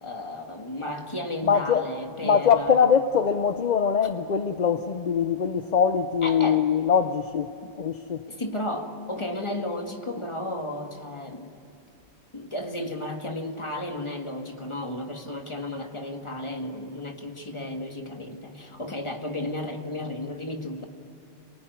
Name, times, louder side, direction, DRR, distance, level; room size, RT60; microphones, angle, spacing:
voice 1, 0.0-2.7 6.2-6.7 7.6-7.7 8.3-11.6 12.3-20.8, left 1 dB, 20° left, 2.0 m, -33 dB
voice 2, 1.4-1.9 2.2-7.5 7.8-8.2, left 7 dB, 40° left, 0.7 m, -22 dB
28.5 x 19.5 x 9.5 m
omnidirectional pair, 1.3 m